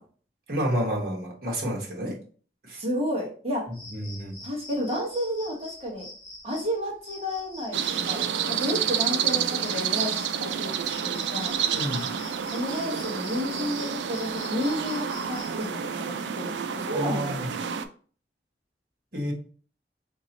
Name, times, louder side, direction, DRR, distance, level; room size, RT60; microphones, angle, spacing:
voice 1, 0.5-2.2 2.6-2.8 3.9-4.4 11.7-12.1 16.9-17.5 19.1-19.3, equal, 55° right, -1 dB, 1.3 m, -29 dB
voice 2, 2.7-3.7 4.4-6.1 6.4-7.8 8.0-8.2 8.5-10.7 11.0-11.6 12.5-17.4, equal, 35° right, -3 dB, 1.2 m, -31 dB
sound 1, 3.7-15.7, left 2 dB, 25° left, 0.9 m, -45 dB
sound 2, 7.7-17.9, right 8 dB, 85° right, 0.4 m, -29 dB
3.9 x 2.9 x 2.8 m, 0.43 s
head